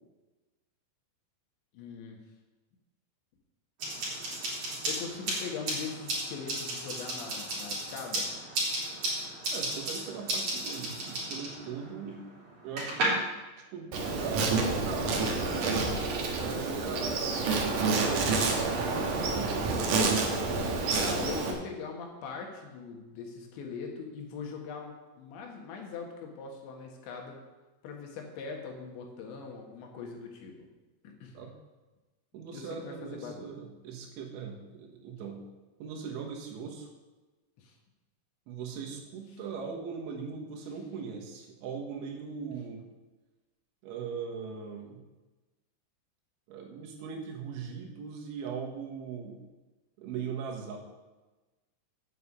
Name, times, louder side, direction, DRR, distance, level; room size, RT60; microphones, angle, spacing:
voice 1, 1.7-2.2 4.9-8.3 16.6-17.3 21.0-27.4 27.8-30.7 31.0-31.4 32.5-33.5 37.6-37.7, left 5 dB, 75° left, 2 dB, 3.8 m, -41 dB
sound 1, 3.8-13.0, right 2 dB, 45° right, 4.7 m, -35 dB
voice 2, 9.5-12.3 12.6-13.3 13.7-15.1 16.4-19.9 31.4-31.5 32.3-35.4 35.8-36.9 38.5-42.8 43.8-45.0 46.5-49.4 50.0-50.8, right 6 dB, 90° right, 1 dB, 3.9 m, -40 dB
Insect, 13.9-21.5, right 3 dB, 60° right, 2.2 m, -28 dB
9.5 x 5.8 x 8.4 m, 1.2 s
omnidirectional pair, 5.3 m